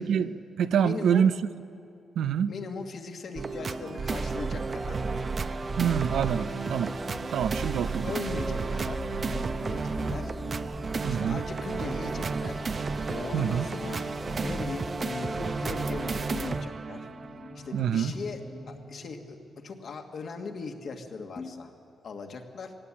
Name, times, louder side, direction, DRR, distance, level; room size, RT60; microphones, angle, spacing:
voice 1, 0.0-1.3 2.2-2.5 5.8-6.9 7.3-8.1 11.0-11.4 13.3-13.7 17.7-18.1, right 8 dB, 85° right, 13 dB, 0.5 m, -26 dB
voice 2, 0.8-1.3 2.5-5.1 6.3-6.6 7.1-7.3 8.0-10.3 11.1-12.6 13.1-14.1 14.4-17.1 17.5-18.4 18.7-21.7 22.0-22.8, left 4 dB, 65° left, 4 dB, 1.7 m, -39 dB
sound 1, 3.3-17.9 18.4-18.5, right 4 dB, 45° right, 0.7 m, -33 dB
sound 2, 4.1-16.6, right 2 dB, 20° right, 0.9 m, -40 dB
sound 3, 8.1-21.0 21.4-21.5, left 3 dB, 45° left, 1.4 m, -45 dB
18.5 x 17.5 x 8.5 m, 2.5 s
cardioid pair, 100°, 0 cm